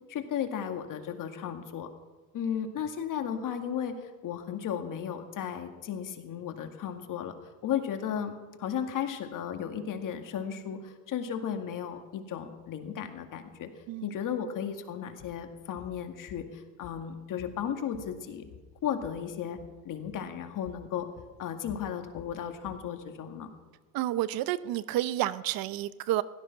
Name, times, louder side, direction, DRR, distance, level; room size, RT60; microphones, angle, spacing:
voice 1, 0.1-1.9 2.3-7.4 7.6-13.7 14.0-18.5 18.8-19.6 19.8-21.1 21.4-23.5, left 8 dB, 45° left, 6 dB, 2.1 m, -35 dB
sound 1, 15.2-15.4 15.7-16.0 16.3-17.1 17.4-19.2 19.5-19.7 20.0-20.2 20.6-20.9 21.2-22.9, left 9 dB, 65° left, 2.6 m, -51 dB
voice 2, 23.9-26.2, right 14 dB, 55° right, 17 dB, 0.7 m, -30 dB
16.5 x 13.5 x 6.0 m, 1.3 s
supercardioid pair, 95°, 43 cm